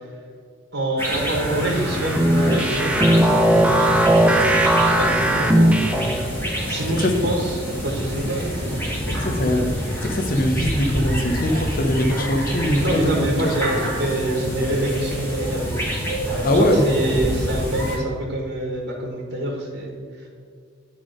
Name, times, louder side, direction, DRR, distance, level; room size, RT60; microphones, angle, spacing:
voice 1, 0.7-4.6 4.8-6.1 6.7-9.2 12.8-15.8 16.5-20.3, right 1 dB, 55° right, -2 dB, 1.4 m, -26 dB
sound 1, 1.0-18.0, equal, 10° left, 1.4 m, -27 dB
sound 2, 1.8-6.3, right 1 dB, 5° right, 0.4 m, -18 dB
voice 2, 9.2-9.7 10.0-13.5 16.4-16.8, left 1 dB, 45° left, 5 dB, 0.8 m, -21 dB
9.4 x 3.6 x 5.1 m, 2.2 s
head